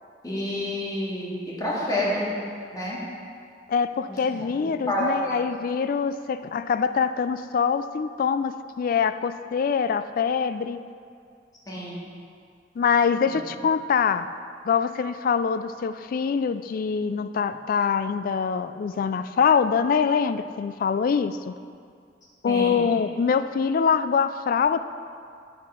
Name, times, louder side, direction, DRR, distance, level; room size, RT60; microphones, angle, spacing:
voice 1, 0.2-2.3 2.7-3.0 4.1-5.3 11.7-12.0 13.2-13.3 22.5-22.8, left 1 dB, 20° left, -6 dB, 1.9 m, -29 dB
voice 2, 3.7-10.8 12.8-14.3 14.6-21.5 22.4-24.8, left 6 dB, 50° left, 12 dB, 0.3 m, -24 dB
8.0 x 6.5 x 5.5 m, 2.3 s
head